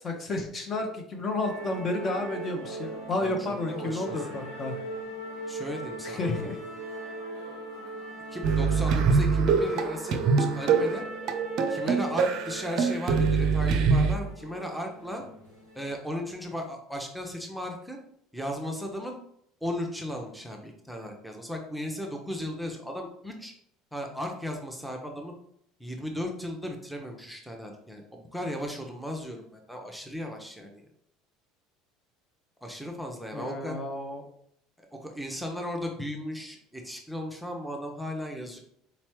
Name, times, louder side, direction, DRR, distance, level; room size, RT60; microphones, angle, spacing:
voice 1, 0.0-4.8 6.0-6.6 33.3-34.2, left 2 dB, 30° left, 3 dB, 0.8 m, -31 dB
sound 1, 1.4-15.9, right 1 dB, 85° left, 1.5 m, -40 dB
voice 2, 3.7-4.4 5.5-6.3 8.3-11.1 11.7-15.2 15.7-18.0 18.3-19.2 19.6-23.5 23.9-25.3 25.8-30.8 32.6-33.8 35.0-38.6, equal, ahead, 1 dB, 0.8 m, -36 dB
sound 2, 8.4-14.2, right 5 dB, 50° right, 0.5 m, -24 dB
4.2 x 4.0 x 3.0 m, 0.71 s
figure-of-eight pair, 65°, 0 cm